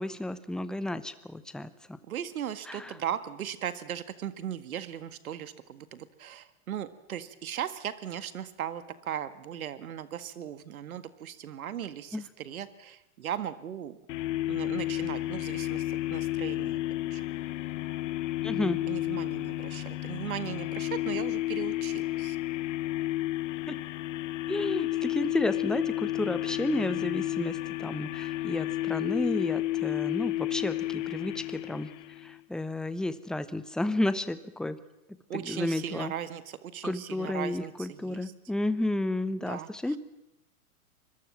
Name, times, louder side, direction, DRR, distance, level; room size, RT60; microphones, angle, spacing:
voice 1, 0.0-2.0 2.7-2.9 12.1-12.2 18.4-18.8 23.7-23.8 24.5-31.9 32.2-34.8 35.3-36.1 36.8-40.0, left 1 dB, ahead, 13 dB, 1.0 m, -32 dB
voice 2, 2.1-14.0 14.5-16.8 17.1-17.3 18.9-22.4 35.3-38.3 39.4-40.0, right 10 dB, 70° right, 13 dB, 2.0 m, -38 dB
sound 1, 14.1-32.4, left 16 dB, 55° left, 1.1 m, -32 dB
25.0 x 21.5 x 7.5 m, 0.90 s
hypercardioid pair, 110°, 44 cm